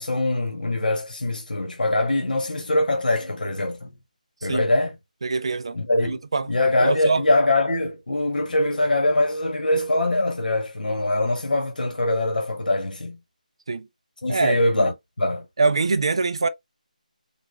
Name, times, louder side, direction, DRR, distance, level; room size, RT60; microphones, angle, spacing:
voice 1, 0.0-3.9 4.4-5.0 5.7-6.2 6.5-13.2 14.2-15.4, left 2 dB, 90° left, 1.2 m, -23 dB
voice 2, 5.2-5.8 6.0-6.5 6.8-7.2 13.7-13.9 14.3-14.9 15.6-16.5, right 4 dB, 40° right, 0.4 m, -24 dB
4.0 x 2.4 x 3.3 m
figure-of-eight pair, 180°, 5 cm